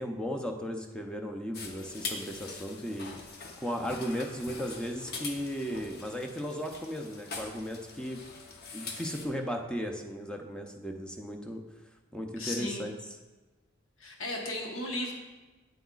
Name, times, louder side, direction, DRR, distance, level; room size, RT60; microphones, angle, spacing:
voice 1, 0.0-3.1 3.6-8.2 8.7-11.6 12.1-12.9, equal, 5° left, 3 dB, 0.5 m, -36 dB
sound 1, 1.5-9.3, left 4 dB, 50° left, 0.8 m, -43 dB
voice 2, 12.4-12.8 14.0-15.1, left 1 dB, 70° left, 1 dB, 1.1 m, -35 dB
8.3 x 7.7 x 2.4 m, 1.2 s
head